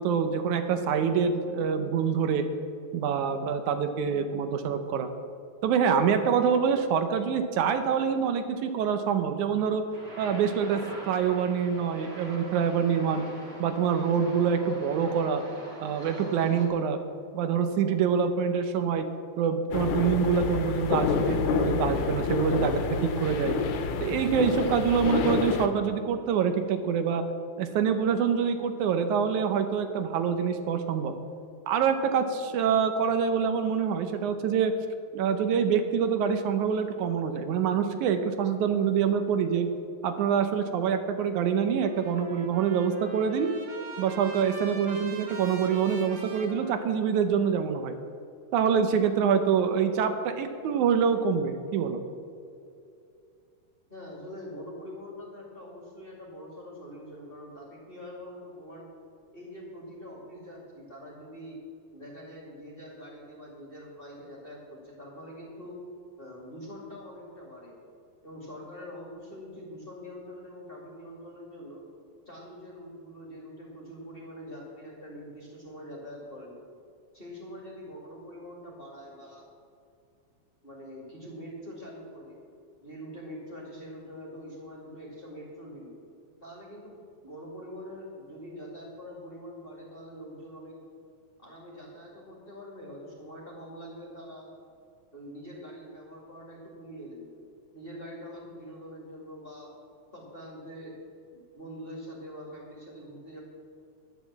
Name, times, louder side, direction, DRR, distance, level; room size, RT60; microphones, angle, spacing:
voice 1, 0.0-2.4 2.9-5.1 5.6-9.8 10.2-13.2 13.6-15.4 15.8-17.0 17.3-19.1 19.4-23.6 24.0-27.2 27.6-31.1 31.7-34.7 35.1-39.7 40.0-43.5 44.0-48.0 48.5-52.0, right 7 dB, 80° right, 7 dB, 2.2 m, -26 dB
sound 1, 9.9-16.7, right 1 dB, 25° right, 1.8 m, -44 dB
sound 2, 19.7-25.7, left 5 dB, 85° left, 2.4 m, -28 dB
Trumpet, 41.8-47.4, right 3 dB, 65° right, 3.2 m, -44 dB
voice 2, 53.9-58.9 59.3-61.6 61.9-65.8 66.2-67.8 68.2-71.8 72.3-76.5 77.1-79.5 80.6-82.4 82.8-86.0 86.4-90.8 91.4-94.5 95.1-97.3 97.7-99.7 100.1-101.0 101.3-103.4, equal, 20° left, -4 dB, 2.0 m, -44 dB
11.0 x 9.1 x 7.2 m, 2.5 s
omnidirectional pair, 3.5 m